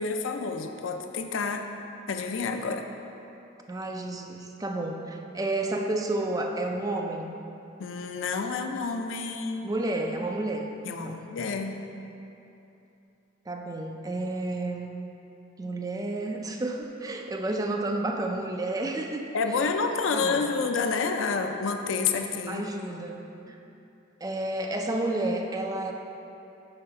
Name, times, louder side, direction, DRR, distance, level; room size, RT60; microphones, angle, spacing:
voice 1, 0.0-1.7 2.1-2.9 7.8-9.7 10.8-11.8 19.3-22.7, left 4 dB, 70° left, 5 dB, 0.4 m, -29 dB
voice 2, 3.7-7.3 9.6-10.7 11.0-11.2 13.5-14.9 15.6-19.6 20.1-20.5 22.5-23.6 24.2-25.9, right 2 dB, 20° right, 2 dB, 0.4 m, -31 dB
6.9 x 3.3 x 5.6 m, 2.8 s
head